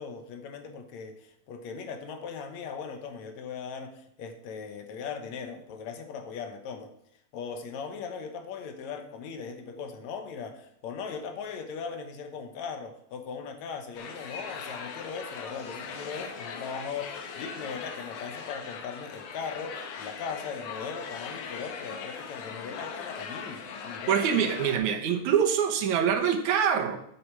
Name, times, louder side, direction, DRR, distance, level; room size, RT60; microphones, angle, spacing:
voice 1, 0.0-6.9 7.3-24.4, left 6 dB, 70° left, 7 dB, 2.3 m, -39 dB
sound 1, 13.9-24.8, left 6 dB, 90° left, 2.8 m, -40 dB
voice 2, 24.1-27.0, right 8 dB, 75° right, 5 dB, 2.5 m, -25 dB
8.5 x 7.8 x 6.0 m, 0.72 s
omnidirectional pair, 3.4 m